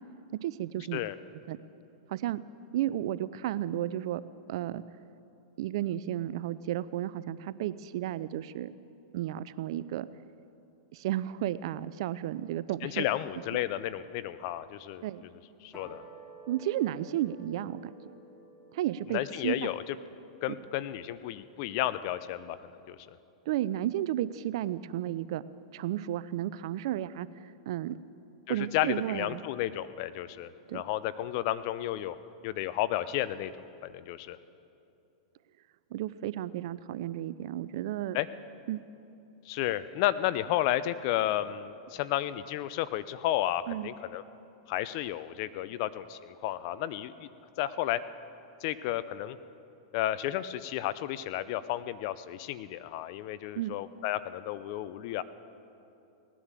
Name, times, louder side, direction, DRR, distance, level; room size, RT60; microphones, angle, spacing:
voice 1, 0.4-1.0 1.5-1.6 2.1-2.4 2.7-4.2 4.5-4.8 5.6-8.7 9.1-10.1 10.9-13.0 15.0-15.2 16.5-17.9 18.7-19.7 23.5-25.4 25.7-28.0 28.5-29.4 30.7-30.8 35.9-38.2 38.7-38.8 43.7-43.9 53.6-53.7, right 13 dB, 65° right, 16 dB, 0.5 m, -33 dB
voice 2, 12.8-15.0 15.6-16.0 19.1-20.0 20.4-23.0 28.5-32.2 32.4-33.5 33.8-34.4 38.1-38.3 39.5-44.2 44.7-47.3 47.6-48.0 48.6-49.4 49.9-55.2, left 13 dB, 55° left, 15 dB, 0.6 m, -32 dB
sound 1, 15.7-22.2, right 3 dB, 15° left, 3.3 m, -54 dB
18.0 x 10.0 x 7.5 m, 2.8 s
hypercardioid pair, 120°, 3 cm